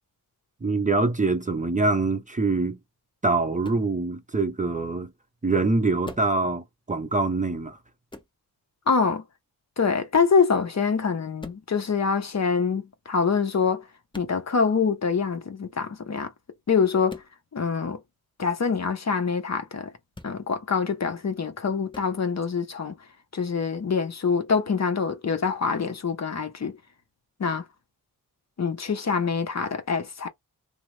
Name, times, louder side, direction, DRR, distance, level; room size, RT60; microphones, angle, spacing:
voice 1, 0.6-2.8 3.2-5.1 5.4-7.8, right 3 dB, 20° right, 0.6 m, -24 dB
sound 1, 3.6-3.9 6.0-6.4 8.1-8.4 10.1-10.4 11.4-11.7 14.1-14.4 17.1-17.3 20.1-20.4 21.9-22.1, left 2 dB, 15° left, 0.8 m, -43 dB
voice 2, 8.9-9.2 9.8-13.8 14.2-16.3 16.7-17.2 17.5-18.0 18.4-19.9 20.2-22.9 23.3-26.8 27.4-27.6 28.6-30.3, left 5 dB, 45° left, 0.7 m, -25 dB
3.0 x 2.0 x 3.0 m
cardioid pair, 70°, 37 cm